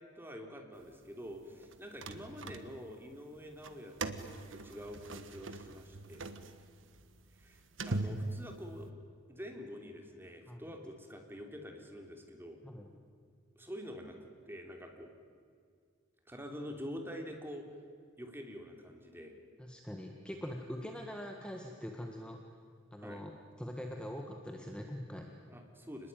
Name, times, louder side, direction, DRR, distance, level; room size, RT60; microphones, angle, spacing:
voice 1, 0.1-6.3 7.3-8.9 9.3-12.6 13.6-15.1 16.3-17.7 18.2-19.4 23.0-23.2 25.5-26.1, equal, 10° right, 2 dB, 3.2 m, -46 dB
sound 1, 1.6-3.1 3.5-8.9, right 2 dB, 75° right, 1.5 m, -41 dB
voice 2, 19.6-22.4 22.9-23.3 23.6-25.3, equal, 5° left, 2 dB, 1.6 m, -43 dB
28.0 x 21.0 x 9.2 m, 2.1 s
head